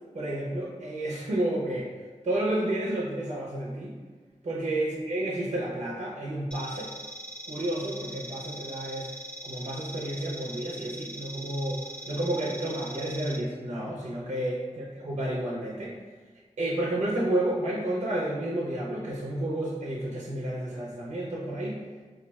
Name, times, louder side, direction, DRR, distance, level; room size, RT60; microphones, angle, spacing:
voice 1, 0.1-1.9 2.2-3.9 4.4-6.9 7.5-9.1 9.4-11.8 12.1-16.0 16.6-21.8, right 1 dB, 65° right, -5 dB, 0.6 m, -31 dB
sound 1, 6.5-13.4, right 1 dB, 5° left, 0.5 m, -41 dB
3.9 x 2.3 x 2.3 m, 1.4 s
wide cardioid pair, 75°, 12 cm